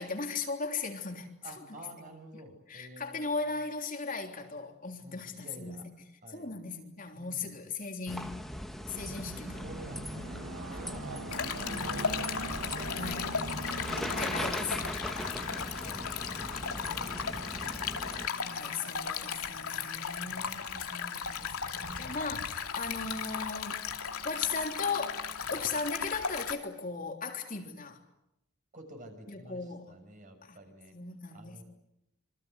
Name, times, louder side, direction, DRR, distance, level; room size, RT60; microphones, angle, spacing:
voice 1, 0.0-1.8 2.7-5.9 6.3-8.4 8.8-9.6 11.6-12.3 12.9-13.3 14.1-14.8 16.5-16.6 18.3-23.8 24.2-28.0 29.3-29.9 30.4-30.6 30.9-31.6, left 4 dB, 40° left, 2 dB, 3.4 m, -37 dB
voice 2, 1.4-3.3 5.0-5.8 6.2-6.5 7.2-7.4 9.6-10.4 10.7-11.0 12.1-12.2 12.6-12.9 15.2-15.4 15.8-17.4 19.7-20.7 21.7-22.2 28.7-29.6 29.9-30.9 31.3-31.6, right 1 dB, 35° right, 5 dB, 6.6 m, -50 dB
sound 1, 8.1-18.3, equal, ahead, 1.8 m, -40 dB
sound 2, 8.9-26.4, right 2 dB, 90° right, 2.1 m, -46 dB
Stream, 11.3-26.5, left 6 dB, 85° left, 2.5 m, -36 dB
27.5 x 25.0 x 8.2 m, 0.85 s
head